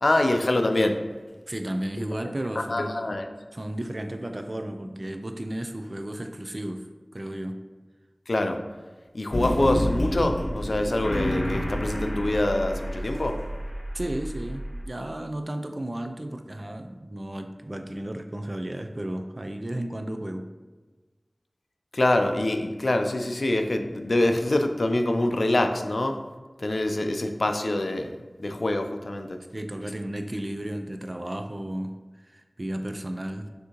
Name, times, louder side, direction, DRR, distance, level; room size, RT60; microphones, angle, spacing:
voice 1, 0.0-1.0 2.6-3.3 8.3-8.6 9.1-13.4 21.9-26.2 26.6-28.1 28.4-29.4, left 1 dB, 75° left, 6 dB, 0.4 m, -25 dB
voice 2, 1.5-3.1 3.5-6.9 7.1-7.6 13.9-20.5 29.5-31.9 32.3-33.5, right 1 dB, 50° right, 6 dB, 0.4 m, -33 dB
sound 1, 9.3-14.8, equal, 55° left, 0.9 m, -29 dB
6.2 x 2.7 x 2.9 m, 1.3 s
wide cardioid pair, 40°, 0 cm